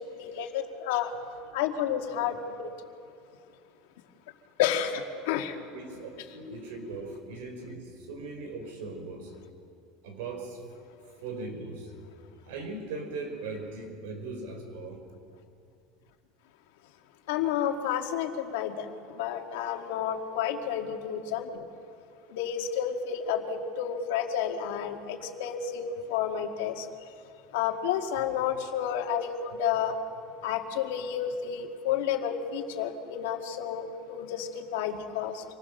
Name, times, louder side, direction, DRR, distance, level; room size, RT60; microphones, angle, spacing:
voice 1, 0.2-1.1 1.5-2.7 4.6-5.5 17.3-18.9 19.2-21.7 22.3-26.9 27.5-29.9 30.4-35.4, left 9 dB, 80° left, 4 dB, 2.0 m, -30 dB
voice 2, 5.7-9.3 10.0-10.6 11.2-11.9 12.4-15.0, right 3 dB, 85° right, 4 dB, 5.4 m, -39 dB
26.5 x 19.5 x 6.6 m, 2.4 s
supercardioid pair, 160°, 0 cm